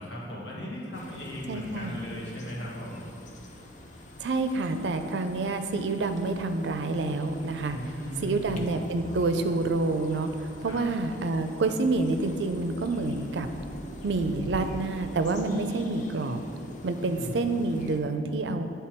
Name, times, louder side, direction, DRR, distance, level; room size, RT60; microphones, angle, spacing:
voice 1, 0.0-3.0 7.7-8.7 10.7-10.8 17.0-17.4, equal, 85° left, -4 dB, 1.5 m, -37 dB
sound 1, 0.9-18.0, left 1 dB, 45° left, 0.7 m, -44 dB
voice 2, 1.5-2.0 4.2-7.8 8.2-13.5 14.0-16.4 16.8-18.7, right 3 dB, 85° right, 8 dB, 0.5 m, -28 dB
9.3 x 3.4 x 4.4 m, 2.4 s
head